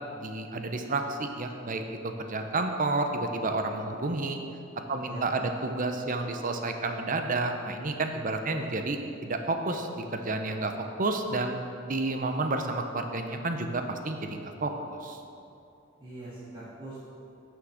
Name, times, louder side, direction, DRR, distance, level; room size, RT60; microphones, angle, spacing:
voice 1, 0.1-1.8 2.2-4.4 4.9-10.7 11.0-11.6 11.9-15.2, right 2 dB, 45° right, 5 dB, 0.8 m, -30 dB
voice 2, 4.9-5.6 16.0-17.0, right 2 dB, 25° right, -11 dB, 1.9 m, -43 dB
9.7 x 6.5 x 6.5 m, 2.6 s
head